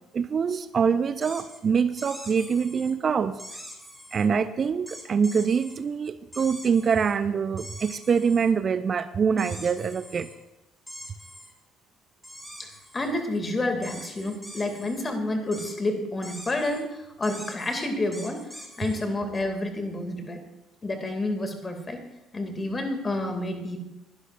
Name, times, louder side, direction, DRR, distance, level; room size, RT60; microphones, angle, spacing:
voice 1, 0.1-3.4 4.1-10.3, right 6 dB, 40° right, 14 dB, 0.5 m, -24 dB
sound 1, 1.2-1.6 2.0-2.9 3.4-4.3 4.9-5.8 6.3-7.2 7.6-8.5 9.4-10.4 10.9-11.5 12.2-13.1 13.8-15.1 15.5-15.8 16.2-16.8 17.2-19.1, equal, 5° left, 4.0 m, -44 dB
voice 2, 12.6-18.5 18.8-20.4 20.8-22.0 22.3-23.8, left 2 dB, 25° left, 5 dB, 2.4 m, -29 dB
21.0 x 11.5 x 2.5 m, 0.97 s
figure-of-eight pair, 50°, 0 cm